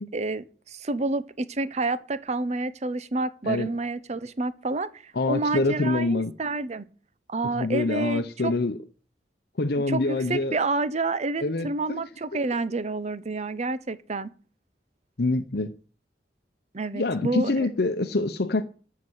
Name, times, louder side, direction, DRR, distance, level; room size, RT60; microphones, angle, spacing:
voice 1, 0.1-6.9 7.3-8.5 9.9-14.3 16.7-17.7, right 3 dB, 40° right, 0.7 m, -29 dB
voice 2, 5.1-6.3 7.5-8.8 9.6-10.6 11.4-12.0 15.2-15.7 16.9-18.6, left 2 dB, 60° left, 0.8 m, -25 dB
13.0 x 5.8 x 8.0 m
head